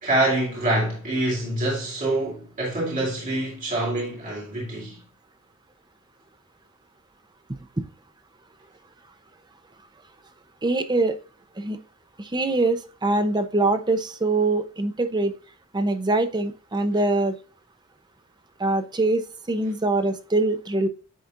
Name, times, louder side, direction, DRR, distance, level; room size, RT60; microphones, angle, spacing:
voice 1, 0.0-5.0, right 1 dB, 40° right, 3.2 m, -25 dB
voice 2, 10.6-11.2 11.6-11.8 12.2-15.4 15.7-17.4 18.6-19.2 19.5-20.9, right 2 dB, 20° right, 0.7 m, -23 dB
10.0 x 4.2 x 2.6 m
head